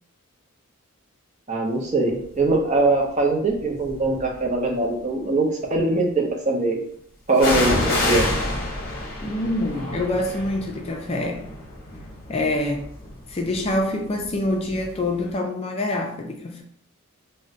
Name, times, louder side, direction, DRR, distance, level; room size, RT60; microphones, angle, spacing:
voice 1, 1.5-6.8 7.3-8.3, right 2 dB, 35° right, 0 dB, 0.5 m, -22 dB
sound 1, 2.4-2.8 3.5-4.5 7.4-15.0 15.3-15.4, left 1 dB, 45° left, 0.8 m, -28 dB
voice 2, 9.2-11.5 12.3-12.8 13.3-16.6, left 1 dB, 30° left, 1 dB, 0.3 m, -26 dB
2.4 x 2.1 x 3.7 m, 0.65 s
head